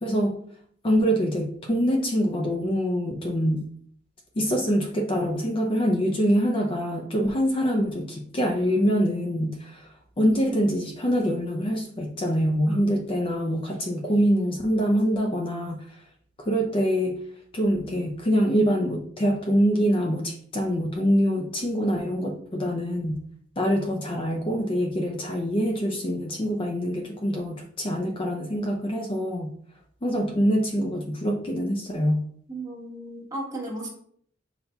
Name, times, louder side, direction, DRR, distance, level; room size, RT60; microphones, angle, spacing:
voice 1, 0.0-0.4 0.8-3.6 4.4-9.9 10.2-16.0 16.4-17.2 17.5-23.2 23.6-29.5 30.0-32.2, equal, 30° left, 2 dB, 0.5 m, -25 dB
voice 2, 32.5-33.9, right 1 dB, 20° right, -3 dB, 1.2 m, -35 dB
5.5 x 4.1 x 2.3 m, 0.63 s
head